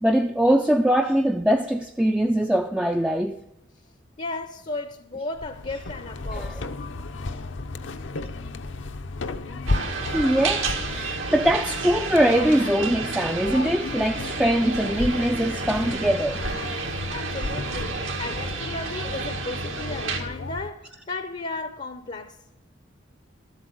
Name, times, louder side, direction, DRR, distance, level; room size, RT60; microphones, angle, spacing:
voice 1, 0.0-3.4 6.3-6.5 9.9-16.4 17.4-17.5, right 1 dB, 5° right, 0.3 m, -22 dB
voice 2, 4.2-6.6 16.8-22.4, left 3 dB, 35° left, 0.6 m, -35 dB
sound 1, 5.3-20.7, left 2 dB, 70° left, 0.7 m, -34 dB
sound 2, 9.7-20.2, right 4 dB, 85° right, 2.1 m, -31 dB
13.0 x 8.1 x 6.3 m
head